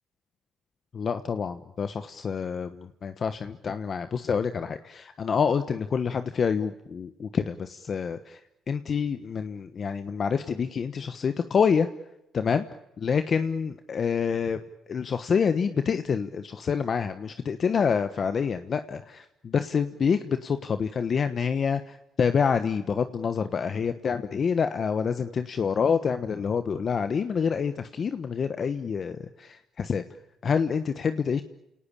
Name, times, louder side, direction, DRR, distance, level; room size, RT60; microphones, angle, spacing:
voice 1, 0.9-2.8 3.0-8.4 8.7-11.9 12.3-12.6 13.0-14.6 14.9-30.0 30.4-31.4, left 6 dB, 45° left, 10 dB, 1.3 m, -27 dB
29.5 x 18.5 x 8.9 m, 0.88 s
cardioid pair, 90°, 0 cm